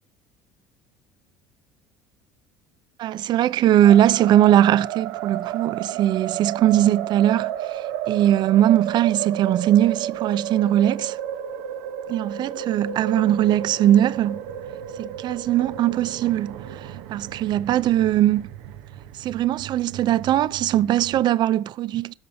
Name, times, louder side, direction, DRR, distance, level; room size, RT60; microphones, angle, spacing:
voice 1, 3.0-11.2 12.1-14.4 15.0-18.4 19.2-22.1, right 12 dB, 50° right, 0.5 m, -20 dB
sound 1, 3.8-21.2, right 10 dB, 70° right, 0.9 m, -33 dB
12.5 x 5.4 x 6.4 m
hypercardioid pair, 75°, 10 cm